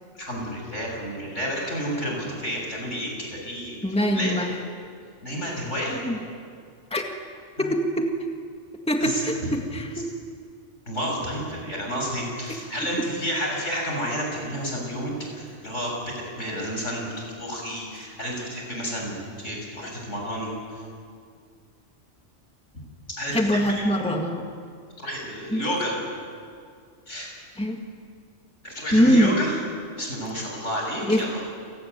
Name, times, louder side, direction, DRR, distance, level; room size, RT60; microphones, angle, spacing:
voice 1, 0.1-3.8 4.1-4.3 5.2-6.0 7.6-7.7 9.0-9.5 10.9-17.1 17.4-20.8 23.2-23.6 25.0-25.9 27.1-27.3 28.6-29.6 30.0-31.4, equal, 80° left, -1 dB, 7.3 m, -30 dB
voice 2, 3.8-4.5 5.9-6.2 6.9-7.1 7.6-8.1 8.9-10.1 13.0-13.1 23.3-24.5 25.5-25.6 27.6-27.8 28.9-29.4 31.0-31.3, equal, 5° left, 3 dB, 1.8 m, -23 dB
28.5 x 18.0 x 9.5 m, 2.2 s
omnidirectional pair, 1.2 m